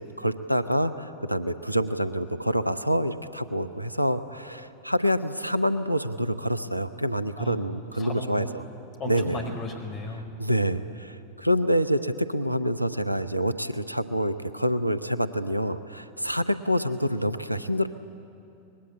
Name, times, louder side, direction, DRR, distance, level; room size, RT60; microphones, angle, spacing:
voice 1, 0.0-8.6 9.0-9.5 10.4-17.9, equal, 90° right, 12 dB, 0.7 m, -27 dB
voice 2, 8.0-8.5 9.0-10.3, left 2 dB, 35° left, 4 dB, 4.5 m, -35 dB
24.0 x 20.5 x 8.8 m, 2.8 s
figure-of-eight pair, 90°, 0 cm